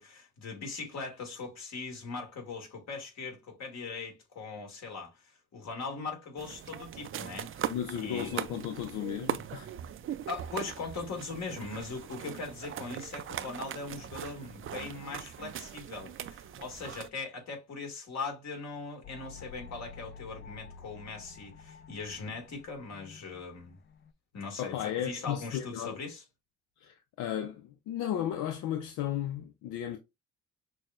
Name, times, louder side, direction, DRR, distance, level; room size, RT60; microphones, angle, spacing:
voice 1, 0.0-8.3 10.3-23.8 24.3-26.2, left 4 dB, 60° left, 1.8 m, -40 dB
sound 1, 6.4-17.1, right 10 dB, 45° right, 0.4 m, -40 dB
voice 2, 7.7-9.7 24.6-26.0 26.8-30.0, left 10 dB, 90° left, 0.6 m, -34 dB
sound 2, 19.0-24.1, left 5 dB, 35° left, 0.5 m, -50 dB
6.1 x 2.2 x 2.4 m
cardioid pair, 90°, 30 cm